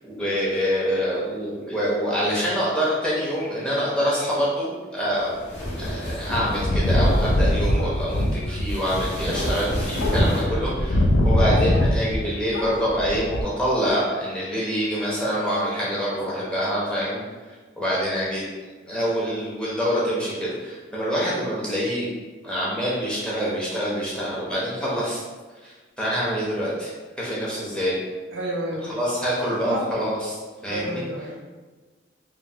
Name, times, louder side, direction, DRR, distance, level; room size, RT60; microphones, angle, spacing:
voice 1, 0.1-5.4 5.8-17.2 17.8-18.4 18.8-22.1 22.4-25.2 25.6-26.9 27.2-28.0 28.9-30.4 30.6-31.0, equal, 5° left, -7 dB, 0.5 m, -26 dB
sound 1, 5.2-10.4, equal, 65° left, 0.9 m, -29 dB
sound 2, 6.3-12.3 12.5-13.4, left 1 dB, 85° left, 0.4 m, -23 dB
voice 2, 10.0-10.8 28.3-28.8 29.6-29.9 30.7-31.4, right 1 dB, 70° right, -1 dB, 0.5 m, -31 dB
3.0 x 2.1 x 2.6 m, 1.3 s
head